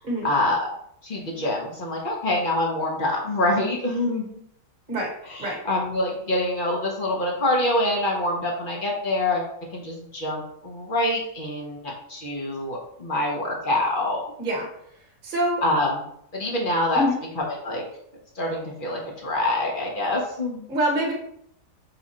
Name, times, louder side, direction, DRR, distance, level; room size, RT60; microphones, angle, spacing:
voice 1, 0.2-0.7 1.0-4.4 5.3-9.5 9.7-14.2 15.6-16.0 16.3-17.0 17.3-17.8 18.4-20.7, left 1 dB, 40° left, -1 dB, 0.8 m, -25 dB
voice 2, 15.2-15.6 16.9-17.2 20.7-21.1, equal, 30° right, -2 dB, 1.3 m, -25 dB
5.0 x 2.4 x 4.2 m, 0.72 s
omnidirectional pair, 1.8 m